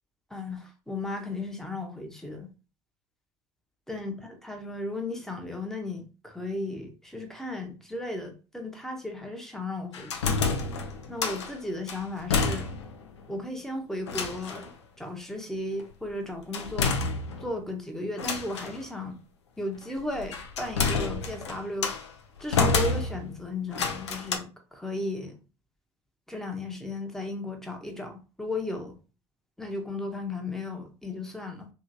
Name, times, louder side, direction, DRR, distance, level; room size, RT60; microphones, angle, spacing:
voice 1, 0.3-2.5 3.9-10.4 11.1-12.7 13.3-17.0 17.4-19.2 19.6-21.9 22.4-25.4 26.3-29.0 29.6-31.7, left 2 dB, 5° left, 0.9 m, -35 dB
sound 1, 9.9-11.5 11.9-13.0 13.3-13.4 14.1-14.7 16.5-17.6 18.2-18.8 19.9-22.1 22.5-23.4 23.7-24.4, left 4 dB, 85° left, 0.5 m, -29 dB
2.9 x 2.9 x 2.5 m
hypercardioid pair, 65°, 14 cm